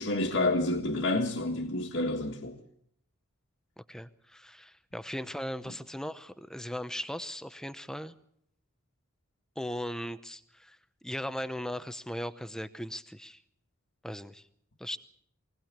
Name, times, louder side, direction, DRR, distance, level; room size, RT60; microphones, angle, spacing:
voice 1, 0.0-2.6 5.7-5.8, left 2 dB, 60° left, 1.7 m, -29 dB
voice 2, 3.9-8.1 9.6-10.8 11.0-13.4 14.0-14.4 14.8-15.0, equal, 5° left, 0.8 m, -38 dB
23.5 x 17.5 x 7.4 m
head